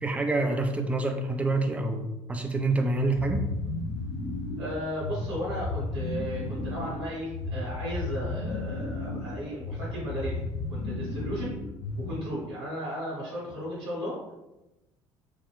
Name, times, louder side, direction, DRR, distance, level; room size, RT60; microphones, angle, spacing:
voice 1, 0.0-3.4, right 2 dB, 10° right, 5 dB, 0.3 m, -27 dB
sound 1, 3.2-12.4, left 2 dB, 55° left, 0.5 m, -34 dB
voice 2, 4.6-11.5 12.0-14.2, equal, 65° right, -7 dB, 0.9 m, -35 dB
3.1 x 2.1 x 2.2 m, 0.98 s
figure-of-eight pair, 55°, 15 cm